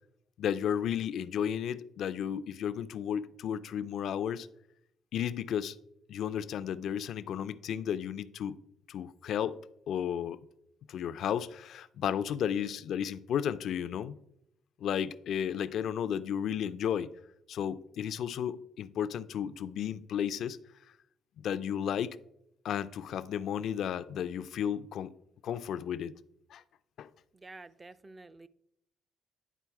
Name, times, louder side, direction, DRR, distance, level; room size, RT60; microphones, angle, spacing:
voice 1, 0.4-4.5 5.1-5.8 6.1-8.6 8.9-9.6 9.9-10.4 10.9-14.2 14.8-17.1 17.5-20.6 21.4-22.2 22.6-25.1 25.4-26.1 26.5-26.6 27.0-27.1, left 9 dB, 70° left, 0.4 m, -33 dB
voice 2, 27.3-28.5, right 3 dB, 25° right, 0.4 m, -50 dB
10.0 x 3.9 x 4.7 m
cardioid pair, 90°, 0 cm